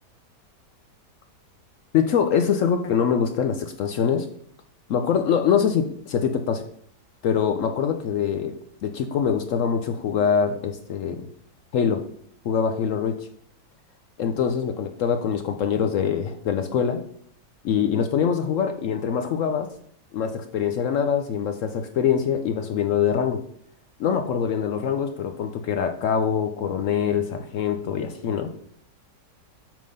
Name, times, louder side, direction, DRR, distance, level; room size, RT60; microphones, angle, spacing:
voice 1, 1.9-4.3 4.9-6.6 7.2-8.5 8.8-11.3 11.7-12.0 12.4-13.3 14.2-17.0 17.6-19.7 20.1-23.4 24.0-28.5, left 7 dB, 75° left, 6 dB, 0.7 m, -24 dB
7.5 x 3.7 x 5.3 m, 0.64 s
omnidirectional pair, 1.9 m